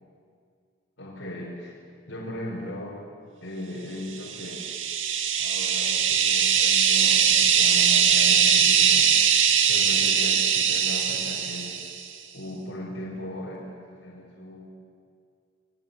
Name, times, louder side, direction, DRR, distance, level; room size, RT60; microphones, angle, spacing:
voice 1, 1.0-3.0 3.4-4.7 5.4-9.1 9.7-11.7 12.3-14.7, left 1 dB, 70° left, -5 dB, 5.3 m, -37 dB
sound 1, 4.2-12.0, right 8 dB, 70° right, 2.3 m, -21 dB
28.5 x 21.0 x 9.1 m, 2.2 s
head